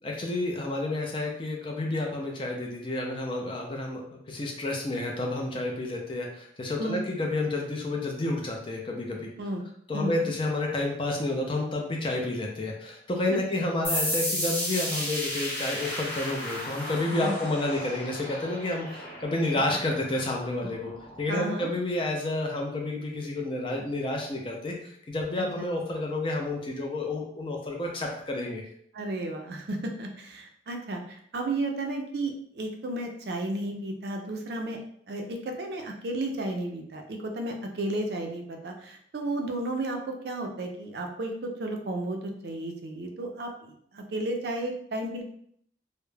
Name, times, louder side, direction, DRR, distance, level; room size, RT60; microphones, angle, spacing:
voice 1, 0.0-9.3 9.9-20.9 21.2-28.6, left 2 dB, 30° left, 0 dB, 0.4 m, -30 dB
voice 2, 9.9-10.3 13.3-13.6 17.2-17.4 21.3-21.7 25.6-25.7 28.9-34.8 35.1-45.2, right 2 dB, 60° right, 3 dB, 0.4 m, -33 dB
sound 1, 13.8-21.2, left 1 dB, 10° left, 0.8 m, -34 dB
2.3 x 2.0 x 3.1 m, 0.67 s
head